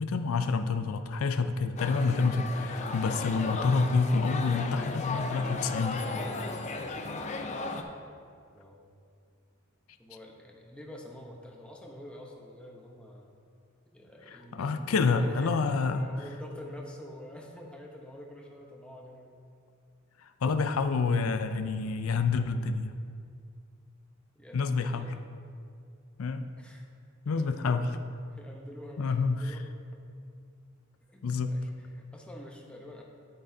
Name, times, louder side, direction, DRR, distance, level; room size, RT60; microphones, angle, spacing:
voice 1, 0.0-6.1 14.3-16.1 20.4-22.9 24.5-25.1 26.2-26.5 27.3-27.8 29.0-29.6 31.2-31.5, left 4 dB, 90° left, 9 dB, 0.5 m, -28 dB
sound 1, 1.8-7.8, left 3 dB, 35° left, 0.5 m, -35 dB
voice 2, 10.0-13.3 13.9-19.4 24.3-25.1 26.6-26.8 27.2-28.0 28.3-29.7 31.1-33.0, left 1 dB, 5° left, -1 dB, 0.8 m, -47 dB
9.9 x 8.7 x 2.7 m, 2.3 s
head